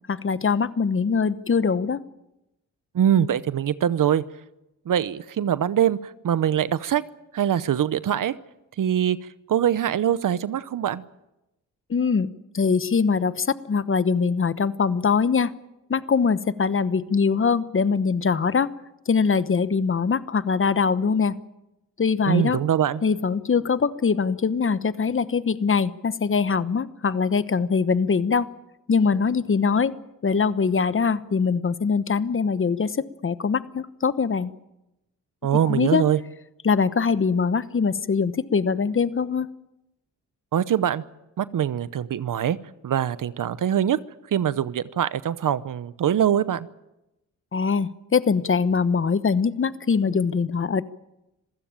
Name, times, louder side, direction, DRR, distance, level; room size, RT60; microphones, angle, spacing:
voice 1, 0.1-2.0 11.9-12.3 12.5-15.5 15.9-18.7 19.1-21.3 22.0-22.6 23.0-28.5 28.9-29.9 30.2-34.5 35.5-36.0 36.6-39.5 47.5-50.8, left 5 dB, 40° left, 15 dB, 1.1 m, -22 dB
voice 2, 2.9-4.2 4.9-7.0 7.3-8.3 8.8-9.2 9.5-11.0 22.3-23.0 35.4-36.2 40.5-41.0 41.4-42.6 42.8-44.0 44.3-46.7, right 10 dB, 70° right, 16 dB, 0.8 m, -23 dB
26.0 x 16.0 x 8.9 m, 0.93 s
cardioid pair, 75°, 33 cm